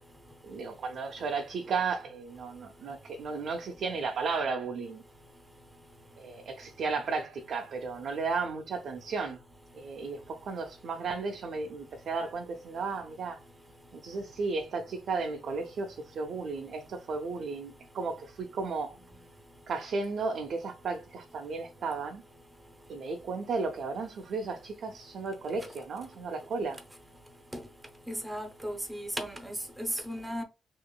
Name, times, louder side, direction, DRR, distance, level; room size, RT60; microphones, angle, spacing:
voice 1, 0.4-5.0 6.2-9.4 9.7-13.4 13.9-19.0 19.7-22.2 22.9-26.8, right 4 dB, 50° right, 0.5 m, -34 dB
voice 2, 28.1-30.4, equal, 5° right, 0.7 m, -35 dB
3.7 x 2.9 x 2.3 m
cardioid pair, 160°, 0 cm